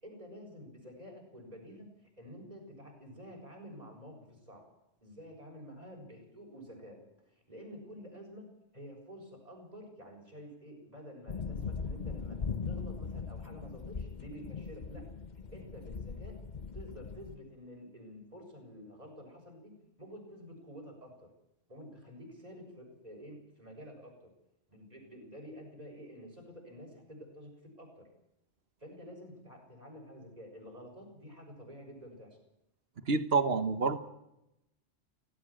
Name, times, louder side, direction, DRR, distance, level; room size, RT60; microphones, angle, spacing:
voice 1, 0.0-1.9 2.2-4.6 5.0-7.0 7.3-12.4 12.6-15.0 15.5-16.4 16.7-19.7 20.0-21.3 21.7-24.3 24.7-27.5 27.8-28.1 28.8-32.4, equal, 35° right, 2 dB, 7.4 m, -49 dB
sound 1, 11.3-17.3, left 5 dB, 40° left, 1.0 m, -40 dB
voice 2, 33.1-34.0, right 4 dB, 60° right, 12 dB, 1.6 m, -28 dB
18.0 x 16.5 x 9.0 m, 0.86 s
omnidirectional pair, 1.2 m